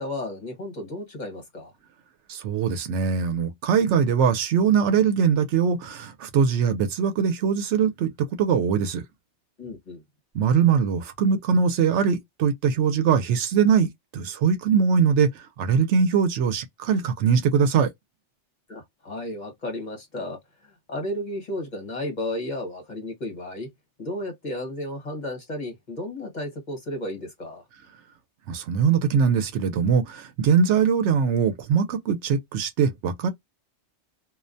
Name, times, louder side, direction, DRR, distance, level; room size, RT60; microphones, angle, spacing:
voice 1, 0.0-1.7 9.6-10.0 18.7-23.7 24.0-27.6, left 1 dB, 40° left, 1.2 m, -33 dB
voice 2, 2.3-8.1 8.4-9.0 10.3-15.3 15.6-17.9 28.5-33.3, right 6 dB, 80° right, 0.9 m, -22 dB
2.4 x 2.1 x 2.5 m
omnidirectional pair, 1.2 m